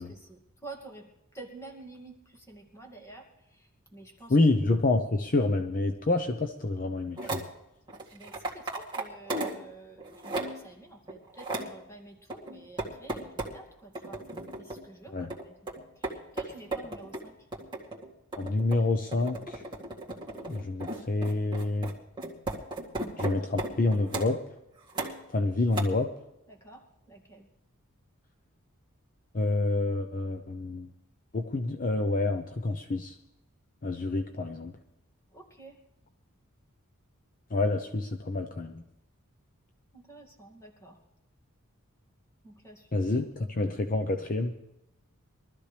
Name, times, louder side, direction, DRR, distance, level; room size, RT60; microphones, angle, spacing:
voice 1, 0.0-4.4 8.1-14.2 14.6-15.6 16.0-17.5 26.5-27.5 35.3-35.8 39.9-41.0 42.4-43.1, right 3 dB, 15° left, 1 dB, 2.4 m, -49 dB
voice 2, 4.3-7.4 15.1-15.3 18.4-19.6 20.4-21.9 23.2-24.4 25.3-26.1 29.3-30.9 31.3-33.2 33.8-34.7 37.5-38.8 42.9-44.5, left 2 dB, 40° left, 6 dB, 0.8 m, -28 dB
sound 1, 7.2-7.5 7.9-9.6 10.0-10.7 11.1-11.7 12.3-13.6 13.9-14.8 15.3-24.3 24.9-25.4 25.7-25.8, right 2 dB, 20° right, 2.1 m, -36 dB
23.0 x 13.5 x 3.4 m, 0.88 s
head